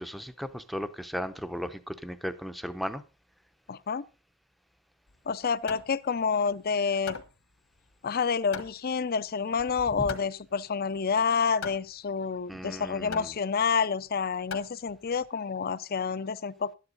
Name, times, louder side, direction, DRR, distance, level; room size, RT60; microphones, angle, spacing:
voice 1, 0.0-3.0 10.0-10.1 12.5-13.3, equal, ahead, 0.7 m, -36 dB
voice 2, 3.7-4.0 5.3-7.2 8.0-16.7, left 5 dB, 45° left, 0.5 m, -28 dB
Hammer, 5.1-15.3, left 5 dB, 75° left, 1.5 m, -43 dB
12.5 x 9.9 x 3.9 m
head